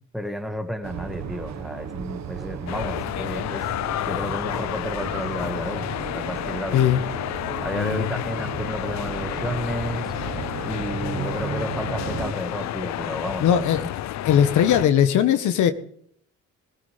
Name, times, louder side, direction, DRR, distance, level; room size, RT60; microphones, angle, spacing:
voice 1, 0.1-6.8 7.6-10.4 10.7-13.9, equal, ahead, 8 dB, 1.8 m, -32 dB
sound 1, 0.8-12.3, right 7 dB, 65° right, 1.4 m, -35 dB
sound 2, 2.7-14.9, left 13 dB, 65° left, 0.6 m, -30 dB
voice 2, 7.7-8.1 13.4-13.8 14.2-15.7, left 9 dB, 80° left, 11 dB, 1.3 m, -19 dB
21.0 x 13.5 x 3.4 m, 0.62 s
cardioid pair, 90°, 30 cm